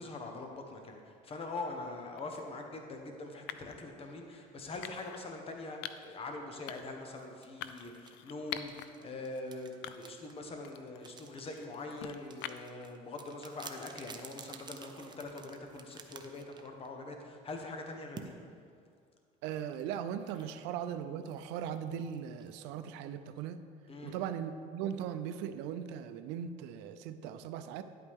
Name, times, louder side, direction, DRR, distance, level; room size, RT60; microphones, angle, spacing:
voice 1, 0.0-18.3 23.9-24.2, left 2 dB, 35° left, 3 dB, 1.2 m, -43 dB
sound 1, 2.2-2.4 3.5-3.8 4.8-5.2 5.8-6.2 6.7-7.0 7.6-8.9 9.3-9.4 9.8-10.3 10.6-12.8, left 12 dB, 75° left, 0.5 m, -45 dB
sound 2, 7.2-17.1 18.2-18.3 19.6-23.5, right 6 dB, 25° right, 0.7 m, -53 dB
voice 2, 19.4-23.6 24.0-27.8, right 9 dB, 80° right, 10 dB, 0.5 m, -39 dB
10.5 x 8.5 x 3.6 m, 2.2 s
cardioid pair, 115°, 18 cm